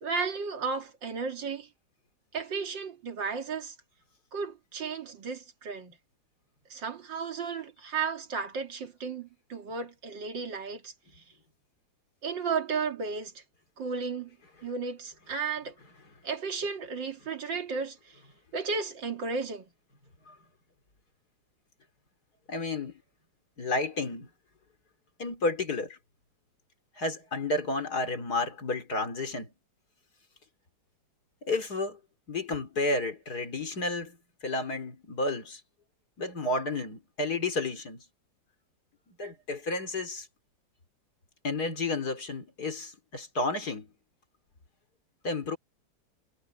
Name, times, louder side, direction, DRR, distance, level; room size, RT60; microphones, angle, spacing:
voice 1, 0.0-1.7 2.3-3.7 4.3-6.0 6.7-11.2 12.2-13.4 13.8-14.4 14.6-15.7 16.2-18.2 18.5-19.7, right 5 dB, 80° right, 2.9 m, -34 dB
voice 2, 22.5-22.9 23.6-24.3 25.2-26.0 27.0-29.5 31.4-32.0 32.3-34.2 34.4-35.6 36.2-38.0 39.1-40.3 41.4-43.9 45.2-45.6, left 2 dB, 55° left, 3.7 m, -31 dB
omnidirectional pair, 2.0 m